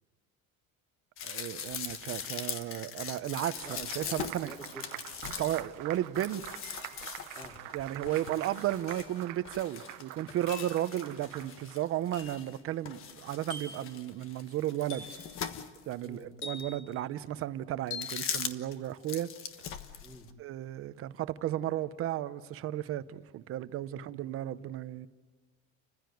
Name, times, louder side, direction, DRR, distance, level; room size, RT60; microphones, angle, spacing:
sound 1, 1.2-12.6 12.9-16.1 16.6-16.7 17.9-18.8 19.0-20.3, left 7 dB, 40° left, 1.4 m, -41 dB
voice 1, 1.2-4.5 5.4-6.6 7.7-15.1 15.9-19.3 20.4-25.1, right 13 dB, 45° right, 0.9 m, -34 dB
Applause, 3.1-11.8, right 18 dB, 70° right, 1.0 m, -46 dB
voice 2, 3.6-5.1 7.3-7.6 16.0-16.3 20.0-20.4 23.9-24.1, equal, 10° left, 3.2 m, -49 dB
sound 2, 6.6-7.2 8.9-9.2 10.5-10.8 12.1-12.5 13.5-13.9 14.9-15.3 16.4-16.9 17.9-18.2, left 4 dB, 75° left, 5.5 m, -44 dB
30.0 x 15.5 x 9.3 m
cardioid pair, 150°, 32 cm